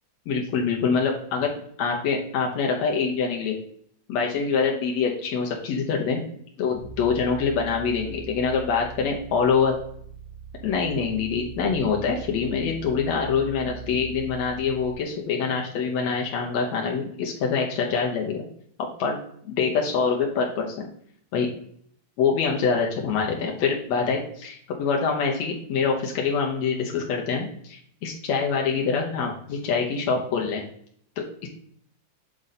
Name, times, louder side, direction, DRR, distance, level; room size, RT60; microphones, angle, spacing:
voice 1, 0.3-1.5 1.8-3.6 4.1-6.2 6.6-9.7 10.6-18.5 19.0-19.2 19.4-20.9 21.3-21.5 22.2-30.6 31.2-31.5, left 5 dB, 75° left, 0 dB, 1.6 m, -25 dB
sound 1, 6.7-14.9, right 6 dB, 50° left, 2.4 m, -41 dB
7.4 x 3.9 x 4.1 m, 0.65 s
omnidirectional pair, 4.1 m